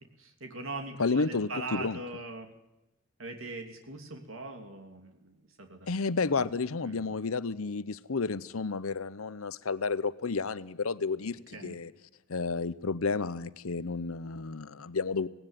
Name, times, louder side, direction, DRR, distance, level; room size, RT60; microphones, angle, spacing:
voice 1, 0.2-2.5 3.2-5.9 6.3-6.5 6.8-7.0 11.5-11.8, right 2 dB, 75° right, 5 dB, 3.0 m, -41 dB
voice 2, 1.0-2.0 5.9-11.9 12.3-15.3, left 4 dB, 80° left, 16 dB, 0.8 m, -31 dB
18.5 x 18.0 x 9.1 m, 0.92 s
head